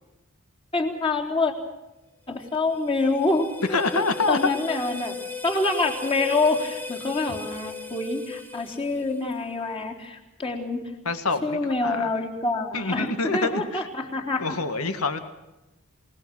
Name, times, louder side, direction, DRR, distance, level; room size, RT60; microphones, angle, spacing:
voice 1, 0.7-1.5 2.3-5.1 5.4-10.8 11.4-14.6, left 3 dB, 25° left, 0 dB, 3.8 m, -26 dB
sound 1, 2.5-9.5, left 4 dB, 10° left, 1.4 m, -38 dB
voice 2, 3.7-4.4 11.1-12.1 12.7-13.9 14.4-15.2, left 3 dB, 90° left, 9 dB, 2.0 m, -26 dB
28.0 x 19.0 x 6.3 m, 0.98 s
head